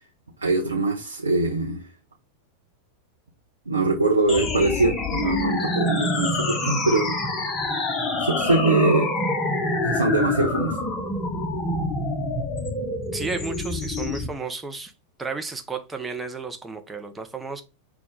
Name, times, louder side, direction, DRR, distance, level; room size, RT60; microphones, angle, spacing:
voice 1, 0.4-1.9 3.7-7.2 8.2-9.1 9.8-10.8, right 2 dB, 75° right, 0.7 m, -22 dB
sound 1, 4.3-14.3, left 2 dB, 25° left, 1.0 m, -26 dB
voice 2, 13.1-14.9 15.2-17.6, right 4 dB, 10° right, 0.8 m, -33 dB
5.7 x 2.4 x 3.8 m
figure-of-eight pair, 90°, 0 cm